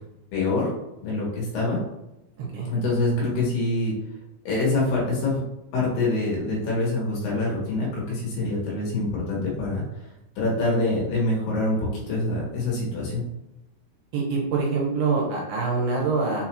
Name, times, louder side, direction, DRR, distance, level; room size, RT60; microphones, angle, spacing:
voice 1, 0.3-0.7 1.0-1.8 2.6-3.9 4.5-5.4 5.7-9.8 10.4-13.2, left 2 dB, 70° left, -5 dB, 2.7 m, -25 dB
voice 2, 14.1-16.4, right 4 dB, 85° right, -2 dB, 3.1 m, -25 dB
6.5 x 2.4 x 2.9 m, 0.93 s
omnidirectional pair, 4.7 m